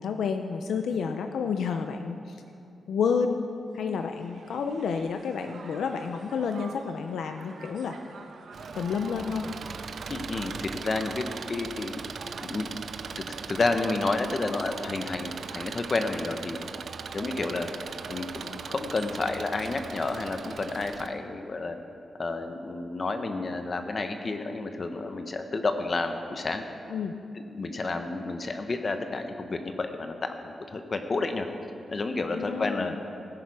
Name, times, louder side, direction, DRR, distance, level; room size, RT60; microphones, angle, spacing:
voice 1, 0.0-2.4 2.9-3.5 3.7-8.0 8.7-9.5 26.9-27.1 32.3-32.9, left 6 dB, 85° left, 6 dB, 0.6 m, -30 dB
Crowd, 3.8-21.2, right 4 dB, 75° right, 1.2 m, -48 dB
Engine, 8.5-21.1, right 6 dB, 60° right, 0.4 m, -40 dB
voice 2, 10.1-12.0 12.4-12.8 13.2-16.6 17.1-17.7 18.1-21.8 22.2-26.6 27.5-31.5 31.9-32.9, left 3 dB, 35° left, 6 dB, 0.8 m, -30 dB
16.5 x 10.0 x 4.7 m, 2.6 s
wide cardioid pair, 140°, 0 cm